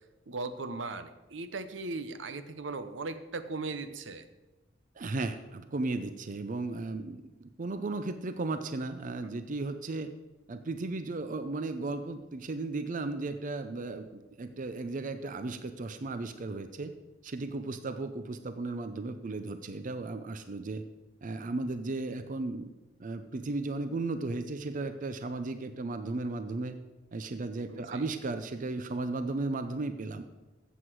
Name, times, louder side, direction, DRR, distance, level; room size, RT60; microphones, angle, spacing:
voice 1, 0.3-4.3 27.7-28.1, right 3 dB, 80° right, 11 dB, 0.8 m, -38 dB
voice 2, 5.0-10.1 10.5-16.9 17.2-20.8 21.2-22.7 23.0-26.7 27.1-30.3, right 3 dB, 45° right, 10 dB, 0.5 m, -35 dB
13.5 x 8.1 x 4.7 m, 1.1 s
head